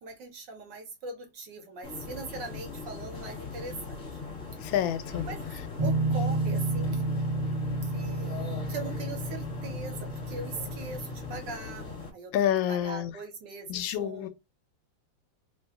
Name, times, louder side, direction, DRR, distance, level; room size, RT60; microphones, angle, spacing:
voice 1, 0.0-4.0 5.2-7.1 7.8-14.3, right 3 dB, 70° right, 1.5 m, -41 dB
sound 1, 1.8-12.1, left 4 dB, 40° left, 1.5 m, -40 dB
voice 2, 4.6-5.2 12.3-13.1 13.7-14.3, left 11 dB, 80° left, 1.3 m, -28 dB
sound 2, 5.8-11.4, right 2 dB, 30° right, 0.8 m, -31 dB
3.3 x 2.2 x 3.6 m
omnidirectional pair, 2.1 m